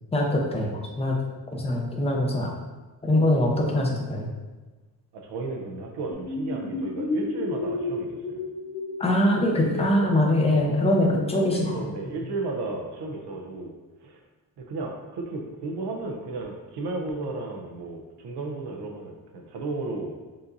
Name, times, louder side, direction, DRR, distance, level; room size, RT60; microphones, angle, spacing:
voice 1, 0.1-1.1 1.5-2.5 3.0-4.3 9.0-12.2, left 1 dB, 15° left, -1 dB, 0.7 m, -23 dB
voice 2, 5.1-8.4 11.5-13.7 14.0-14.2 14.6-20.2, right 3 dB, 85° right, 1 dB, 0.7 m, -34 dB
sound 1, 6.1-11.5, left 3 dB, 80° left, 0.7 m, -32 dB
6.8 x 2.6 x 2.6 m, 1.3 s
cardioid pair, 135°, 39 cm